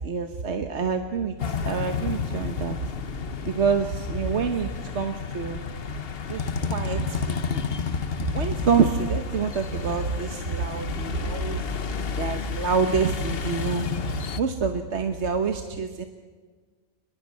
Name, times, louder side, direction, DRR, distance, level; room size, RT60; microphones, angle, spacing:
voice 1, 0.0-2.8 3.4-5.6 6.2-7.6 8.2-11.7 12.2-13.9 14.4-16.0, right 5 dB, 65° right, 6 dB, 1.4 m, -27 dB
sound 1, 1.4-14.4, left 6 dB, 55° left, 1.2 m, -31 dB
24.5 x 20.5 x 9.5 m, 1.5 s
omnidirectional pair, 1.3 m